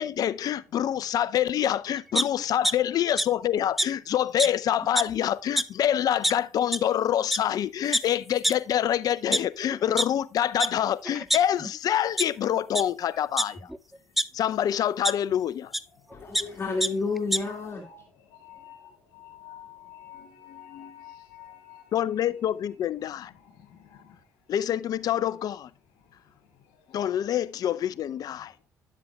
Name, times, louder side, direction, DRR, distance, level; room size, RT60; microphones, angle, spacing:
voice 1, 0.0-13.7 14.3-15.7 21.9-23.3 24.5-25.7 26.9-28.5, left 10 dB, 60° left, 0.5 m, -26 dB
sound 1, 2.1-2.7 3.2-3.3 3.8-3.9 4.4-4.5 4.8-5.1 5.6-5.7 6.2-6.3 6.7-6.8 7.3-7.4 7.9-8.0 8.4-8.5 9.1-10.0 10.6-10.7 11.0-11.8 12.2-12.3 12.7-12.8 13.4-14.2 15.0-15.1 15.7-15.8 16.1-16.4 16.8-16.9 17.2-17.4, equal, ahead, 0.6 m, -25 dB
voice 2, 16.1-17.8, left 4 dB, 35° left, 2.1 m, -30 dB
voice 3, 17.5-18.0 18.3-21.9 23.2-24.2 26.9-27.0 27.5-27.8, left 10 dB, 80° left, 1.9 m, -49 dB
11.0 x 7.5 x 2.3 m
hypercardioid pair, 60°, 7 cm